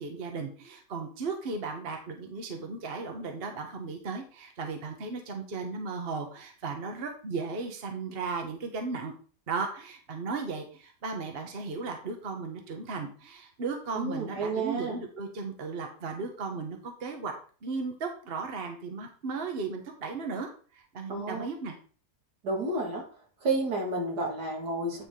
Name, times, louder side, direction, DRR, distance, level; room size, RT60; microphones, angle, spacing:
voice 1, 0.0-9.1 9.5-17.3 17.6-21.7, right 4 dB, 40° right, 4 dB, 1.2 m, -36 dB
voice 2, 13.9-15.0 21.1-21.4 22.4-23.0 23.4-25.1, right 2 dB, 70° right, 0 dB, 2.6 m, -31 dB
9.3 x 4.9 x 3.7 m, 0.41 s
omnidirectional pair, 1.8 m